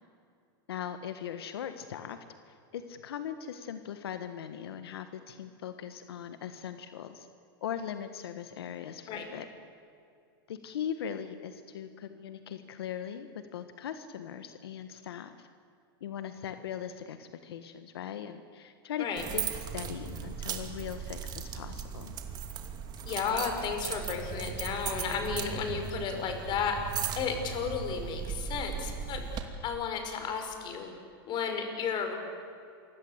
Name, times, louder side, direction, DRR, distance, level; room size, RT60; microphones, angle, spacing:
voice 1, 0.7-2.2 2.5-7.3 7.6-9.5 10.5-15.5 16.0-19.1 19.3-22.2, left 9 dB, 90° left, 9 dB, 1.5 m, -40 dB
sound 1, 19.2-29.4, right 7 dB, 35° right, 2.7 m, -37 dB
voice 2, 23.0-30.9 31.2-32.2, left 6 dB, 35° left, 5 dB, 5.4 m, -33 dB
28.5 x 24.0 x 8.2 m, 2.4 s
supercardioid pair, 135°, 13 cm